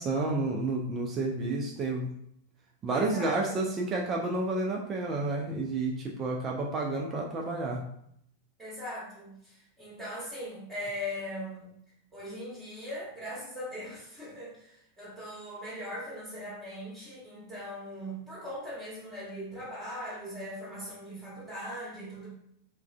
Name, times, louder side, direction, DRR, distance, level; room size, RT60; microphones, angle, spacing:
voice 1, 0.0-2.1 2.8-7.8, right 2 dB, 25° right, 0 dB, 0.3 m, -30 dB
voice 2, 2.9-3.7 8.6-11.7 12.1-22.3, equal, 10° right, -8 dB, 1.1 m, -40 dB
3.0 x 2.4 x 2.2 m, 0.72 s
figure-of-eight pair, 90°, 0 cm